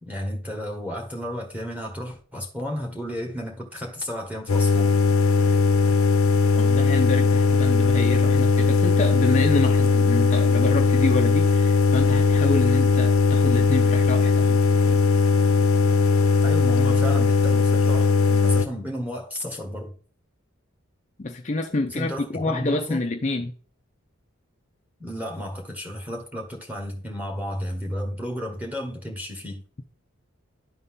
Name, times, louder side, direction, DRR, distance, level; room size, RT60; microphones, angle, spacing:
voice 1, 0.0-5.0 16.4-19.9 21.9-23.0 25.0-29.6, equal, 5° right, 1.5 m, -32 dB
sound 1, 4.5-18.7, left 4 dB, 80° left, 0.7 m, -19 dB
voice 2, 6.6-14.7 21.2-23.5, left 2 dB, 35° left, 0.5 m, -27 dB
12.0 x 4.1 x 3.7 m
head